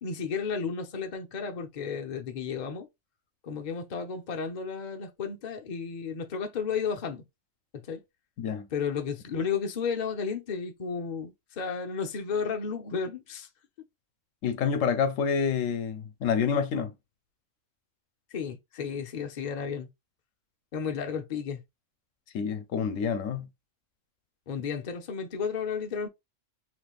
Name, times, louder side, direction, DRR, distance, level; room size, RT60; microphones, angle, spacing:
voice 1, 0.0-2.9 3.4-7.2 7.7-8.0 8.7-13.5 18.3-19.9 20.7-21.6 24.5-26.1, left 6 dB, 45° left, 0.7 m, -33 dB
voice 2, 8.4-8.7 14.4-16.9 22.3-23.5, left 6 dB, 80° left, 1.0 m, -28 dB
3.2 x 3.0 x 2.3 m
omnidirectional pair, 1.3 m